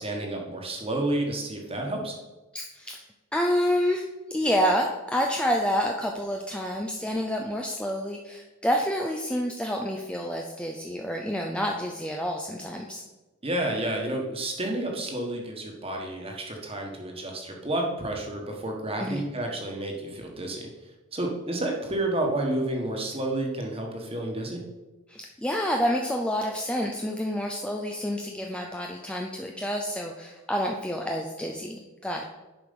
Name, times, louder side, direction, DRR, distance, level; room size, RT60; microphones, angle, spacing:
voice 1, 0.0-2.2 13.4-20.7 21.1-24.6, right 1 dB, 25° right, 1 dB, 1.4 m, -30 dB
voice 2, 2.5-3.0 3.3-13.0 19.0-19.3 25.1-32.2, equal, 5° left, 1 dB, 0.5 m, -28 dB
10.5 x 5.0 x 5.3 m, 1.1 s
head